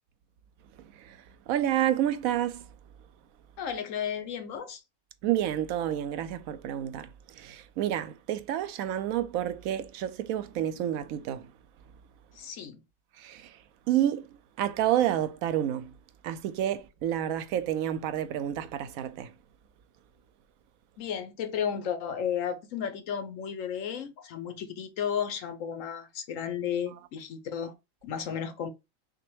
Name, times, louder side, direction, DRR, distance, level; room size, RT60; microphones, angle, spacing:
voice 1, 1.5-2.7 5.2-11.5 13.2-13.6 13.9-14.3 14.6-15.9 16.2-19.3, right 11 dB, 85° right, 1.0 m, -29 dB
voice 2, 3.6-4.8 12.3-12.8 21.0-27.7 28.0-28.7, left 8 dB, 75° left, 1.1 m, -33 dB
5.9 x 2.2 x 3.1 m
omnidirectional pair, 1.4 m